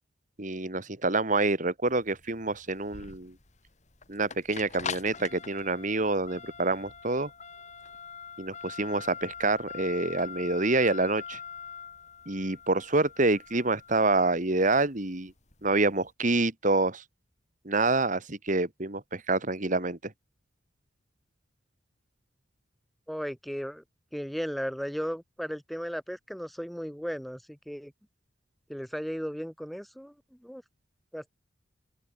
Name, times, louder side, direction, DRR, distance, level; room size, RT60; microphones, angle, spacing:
voice 1, 0.4-3.3 4.1-7.3 8.4-11.4 12.3-15.3 15.6-17.0 17.7-20.1, right 2 dB, 40° right, 2.0 m, -27 dB
sound 1, 1.9-16.0, left 6 dB, 35° left, 2.2 m, -43 dB
voice 2, 23.1-23.8 24.1-27.9 28.7-30.1 30.4-30.6 31.1-31.3, equal, ahead, 1.1 m, -35 dB
open air
head